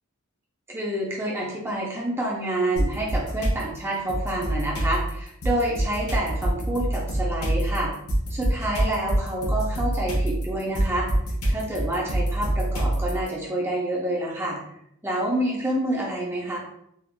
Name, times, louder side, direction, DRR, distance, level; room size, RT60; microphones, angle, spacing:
voice 1, 0.7-7.9 8.3-11.1 11.5-14.6 15.0-16.6, right 1 dB, 10° right, -4 dB, 0.7 m, -28 dB
sound 1, 2.8-3.6 4.1-13.3, right 1 dB, 80° left, 1.0 m, -25 dB
3.6 x 2.5 x 2.4 m, 0.74 s
head